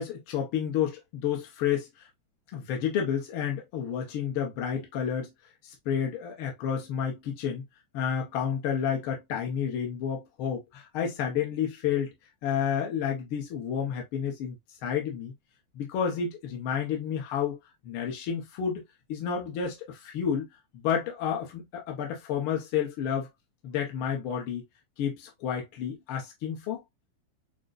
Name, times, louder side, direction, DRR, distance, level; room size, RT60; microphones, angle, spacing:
voice 1, 0.0-1.9 2.5-5.3 5.6-7.6 7.9-12.1 12.4-14.5 14.8-15.3 15.7-17.6 17.8-18.8 19.1-20.5 20.7-23.3 23.6-24.6 25.0-26.8, left 8 dB, 65° left, 1.4 m, -30 dB
6.4 x 2.2 x 2.4 m
omnidirectional pair, 3.3 m